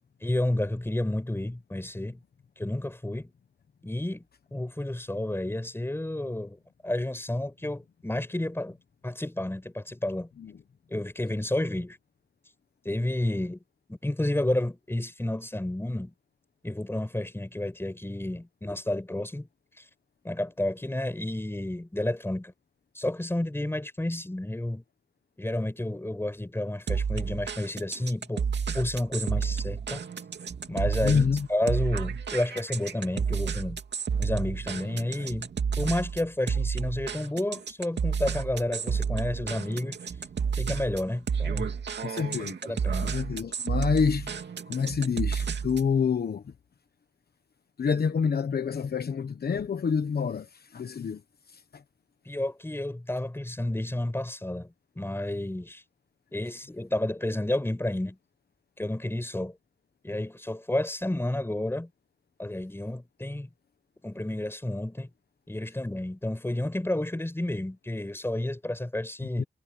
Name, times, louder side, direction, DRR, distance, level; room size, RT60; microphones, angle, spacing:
voice 1, 0.2-2.2 2.6-3.3 3.8-4.2 4.5-8.8 9.0-10.3 10.9-12.0 12.9-13.6 13.9-16.1 16.6-19.5 20.2-22.5 23.0-24.8 25.4-28.5 28.7-30.0 30.7-33.8 34.2-35.5 35.8-40.0 40.6-41.7 42.7-43.1 52.3-54.7 55.0-55.8 56.3-58.2 58.8-59.5 60.0-61.9 62.4-63.5 64.0-65.1 65.5-69.5, left 1 dB, 15° left, 5.4 m, -31 dB
sound 1, 26.9-45.9, right 6 dB, 90° right, 2.6 m, -31 dB
voice 2, 31.0-31.5 42.0-42.6 43.0-44.3 44.7-46.4 47.8-51.2 51.5-51.8 69.4-69.5, left 6 dB, 65° left, 1.1 m, -27 dB
wide cardioid pair, 100°, 17 cm